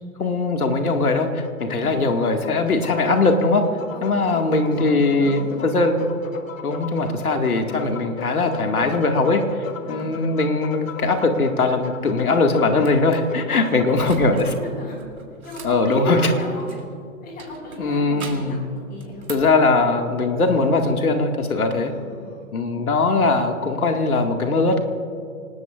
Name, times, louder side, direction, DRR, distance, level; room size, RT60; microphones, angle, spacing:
voice 1, 0.2-3.6 4.0-6.0 6.6-14.5 15.6-16.2 17.8-18.7 19.3-21.9 22.5-24.8, left 3 dB, 80° left, 4 dB, 2.1 m, -20 dB
sound 1, 1.4-14.1, left 6 dB, 60° left, 1.4 m, -36 dB
voice 2, 1.6-1.9 3.9-5.7 9.8-10.1 13.5-15.0 15.4-16.7 17.2-18.6 18.9-19.3 21.8-22.4, left 1 dB, 20° left, 0 dB, 5.1 m, -34 dB
sound 2, 12.8-13.2 13.9-14.5 14.8-16.9 17.4-18.6 19.0-19.6, right 4 dB, 75° right, 2.9 m, -40 dB
27.5 x 19.0 x 2.5 m, 2.3 s
figure-of-eight pair, 125°, 43 cm